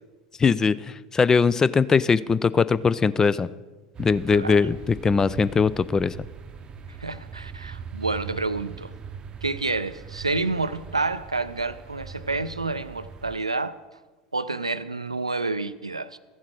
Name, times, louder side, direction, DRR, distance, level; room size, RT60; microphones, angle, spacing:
voice 1, 0.4-3.5 4.0-6.1, left 5 dB, 20° left, 0.3 m, -21 dB
sound 1, 3.9-13.4, right 6 dB, 30° right, 0.7 m, -41 dB
voice 2, 7.0-8.9 9.4-13.8 14.3-16.2, right 3 dB, 85° right, 0.3 m, -29 dB
14.0 x 7.5 x 4.6 m
figure-of-eight pair, 75°, 3 cm